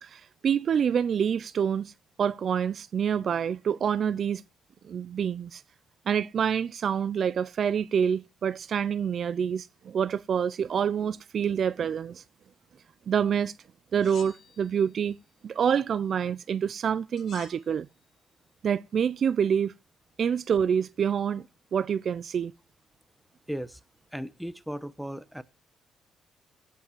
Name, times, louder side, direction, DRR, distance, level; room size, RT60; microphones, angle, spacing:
voice 1, 0.0-1.9 2.2-4.4 4.8-5.6 6.1-12.2 13.1-13.5 13.9-15.2 15.4-17.9 18.6-19.7 20.2-21.4 21.7-22.5, right 7 dB, 55° right, 0.5 m, -27 dB
sound 1, 14.0-15.0 17.2-17.7, left 7 dB, 60° left, 2.1 m, -49 dB
voice 2, 23.5-23.8 24.1-25.4, equal, ahead, 1.0 m, -36 dB
16.5 x 5.6 x 7.2 m
cardioid pair, 90°, 0 cm